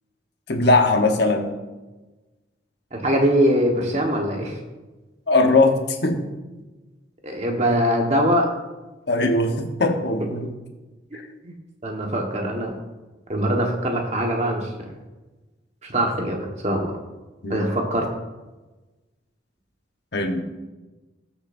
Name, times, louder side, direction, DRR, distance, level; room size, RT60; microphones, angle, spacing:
voice 1, 0.5-1.6 5.3-6.2 9.1-10.5 11.1-11.2 17.4-17.7 20.1-20.4, left 2 dB, 60° left, 4 dB, 1.2 m, -20 dB
voice 2, 2.9-4.6 7.2-8.5 11.4-11.5 11.8-12.8 13.3-14.9 15.8-17.0 17.5-18.1, equal, 35° right, 1 dB, 1.5 m, -22 dB
20.0 x 6.8 x 2.7 m, 1.2 s
head